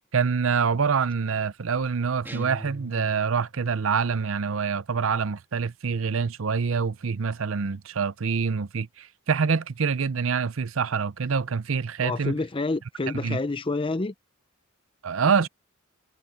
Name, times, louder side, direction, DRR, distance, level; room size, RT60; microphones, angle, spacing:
voice 1, 0.1-12.3 13.2-13.4 15.0-15.5, right 5 dB, 70° right, 0.6 m, -26 dB
sound 1, 2.2-3.6, equal, 10° right, 1.4 m, -40 dB
voice 2, 12.0-14.1, left 3 dB, 25° left, 0.6 m, -28 dB
head